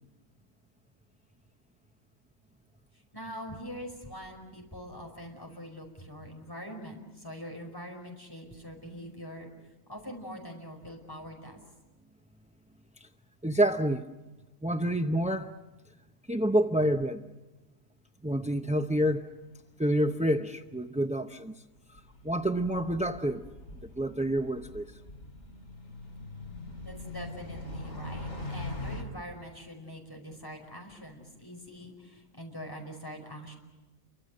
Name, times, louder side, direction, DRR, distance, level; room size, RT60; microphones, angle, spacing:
voice 1, 3.1-9.5 9.9-11.6 26.8-33.6, equal, 15° left, 5.2 m, -43 dB
voice 2, 13.4-14.1 14.6-15.5 16.3-17.2 18.2-19.3 19.8-21.5 22.2-23.4 24.0-24.9, right 1 dB, 10° right, 0.3 m, -28 dB
sound 1, 18.7-19.3 19.6-19.7 21.8-29.0, left 2 dB, 60° left, 4.4 m, -42 dB
29.0 x 24.5 x 6.5 m
omnidirectional pair, 1.5 m